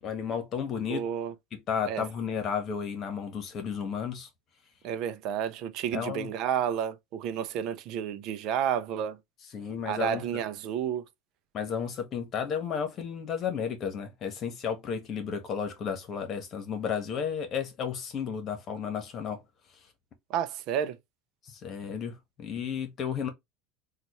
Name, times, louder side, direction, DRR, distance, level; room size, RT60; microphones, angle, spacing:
voice 1, 0.0-1.1 1.5-4.3 5.9-6.3 9.5-10.4 11.5-19.4 21.5-23.3, left 7 dB, 40° left, 1.3 m, -33 dB
voice 2, 0.9-1.3 1.9-2.0 4.8-9.2 9.9-11.0 20.3-21.0, right 9 dB, 60° right, 0.6 m, -31 dB
4.0 x 2.5 x 3.0 m
supercardioid pair, 110°, 0 cm